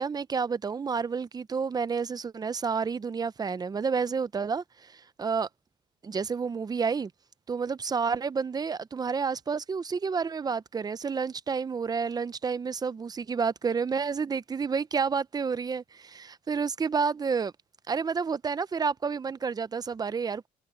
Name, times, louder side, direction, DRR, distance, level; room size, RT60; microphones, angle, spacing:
voice 1, 0.0-5.5 6.0-7.1 7.5-17.5 17.9-20.5, right 5 dB, 25° right, 0.7 m, -30 dB
cardioid pair, 110°, 17 cm